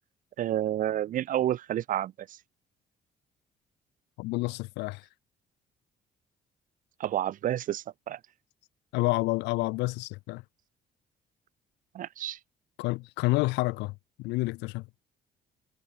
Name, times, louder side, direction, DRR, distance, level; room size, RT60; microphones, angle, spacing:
voice 1, 0.4-2.4 7.0-8.2 11.9-12.4, right 12 dB, 50° right, 0.4 m, -30 dB
voice 2, 4.2-5.1 8.9-10.4 12.8-14.9, left 23 dB, 85° left, 0.7 m, -29 dB
supercardioid pair, 75°, 17 cm